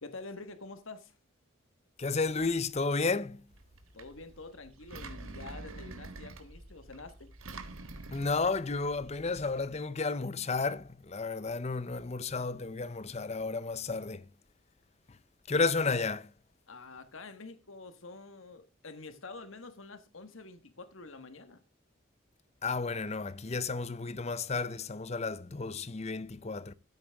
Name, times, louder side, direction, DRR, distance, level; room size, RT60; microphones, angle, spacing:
voice 1, 0.0-1.2 3.9-7.3 16.7-21.6, left 3 dB, 70° left, 1.4 m, -47 dB
voice 2, 2.0-3.4 8.1-14.2 15.5-16.3 22.6-26.7, left 4 dB, 30° left, 0.6 m, -32 dB
Engine, 3.5-9.6, right 2 dB, 85° right, 1.5 m, -47 dB
14.0 x 8.7 x 3.5 m
head